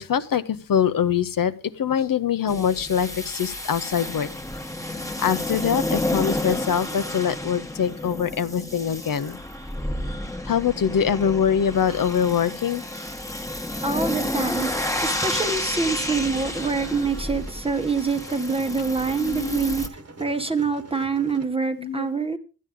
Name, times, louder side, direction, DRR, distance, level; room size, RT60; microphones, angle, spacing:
voice 1, 0.0-4.3 5.2-9.4 10.5-12.8 19.2-19.8 21.8-22.1, left 8 dB, 70° left, 12 dB, 0.6 m, -24 dB
sound 1, 2.5-19.9, left 1 dB, 10° left, 1.1 m, -31 dB
voice 2, 13.8-14.7 15.0-22.4, right 4 dB, 15° right, 8 dB, 0.9 m, -26 dB
sound 2, 14.2-21.5, right 3 dB, 45° right, 1.1 m, -44 dB
13.0 x 9.3 x 3.6 m, 0.33 s
wide cardioid pair, 100°, 35 cm